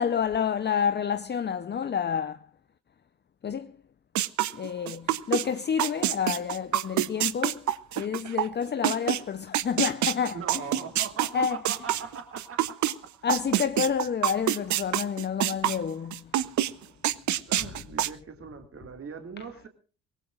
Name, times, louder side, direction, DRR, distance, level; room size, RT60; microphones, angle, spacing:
voice 1, 0.0-2.5 3.4-3.8 4.5-10.7 11.3-11.6 13.2-16.7 19.4-19.5, left 7 dB, 35° left, 0.7 m, -29 dB
sound 1, 4.2-5.4 5.8-9.2 9.5-12.9 13.3-15.8 16.1-16.7 17.0-18.1, right 13 dB, 70° right, 0.8 m, -26 dB
voice 2, 10.3-13.1 17.5-19.7, right 6 dB, 45° right, 2.3 m, -40 dB
23.0 x 18.0 x 2.4 m
cardioid pair, 90°, 30 cm